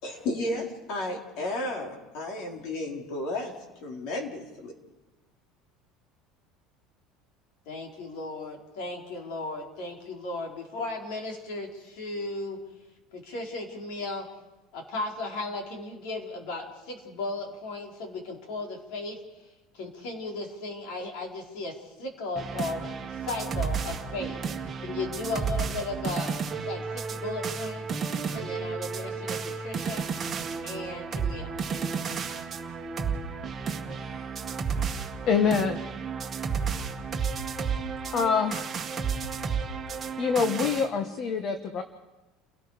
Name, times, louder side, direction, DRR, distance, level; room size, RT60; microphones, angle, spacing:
voice 1, 0.0-3.5 3.8-4.8, left 2 dB, 55° left, 1 dB, 4.4 m, -33 dB
voice 2, 7.7-12.6 13.1-14.2 14.7-19.2 19.7-26.4 26.6-30.1 30.6-31.5, left 2 dB, 70° left, 1 dB, 4.8 m, -36 dB
sound 1, 22.3-40.9, right 5 dB, 20° right, 1.8 m, -32 dB
voice 3, 35.2-35.8 38.1-38.7 40.2-41.8, left 5 dB, 40° left, 7 dB, 1.3 m, -25 dB
30.0 x 18.0 x 5.1 m, 1.1 s
cardioid pair, 155°, 0 cm